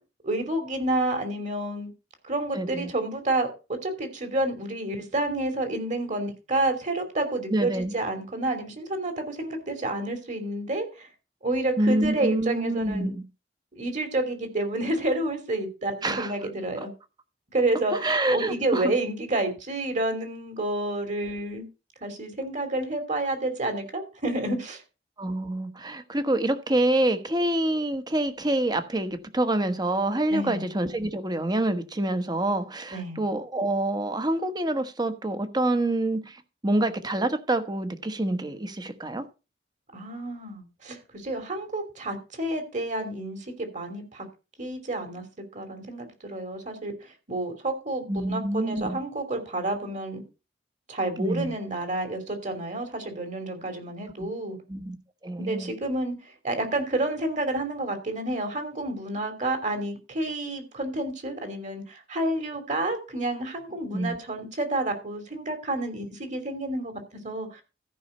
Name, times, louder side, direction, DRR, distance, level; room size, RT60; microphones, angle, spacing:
voice 1, 0.2-1.9 2.2-11.1 11.4-13.1 13.7-16.9 17.5-17.9 18.3-21.7 22.0-24.8 30.3-30.7 32.9-33.2 39.9-44.3 44.6-45.2 45.5-50.2 50.9-54.6 55.4-67.6, right 2 dB, 45° right, 3.0 m, -29 dB
voice 2, 2.5-2.9 7.5-7.9 11.8-13.2 16.0-16.3 17.9-18.8 25.2-36.4 36.6-39.2 48.1-49.0 51.2-51.5 54.2-54.3 54.7-55.0 55.2-55.7 63.9-64.2, right 1 dB, 25° right, 1.2 m, -26 dB
14.0 x 5.6 x 5.4 m
head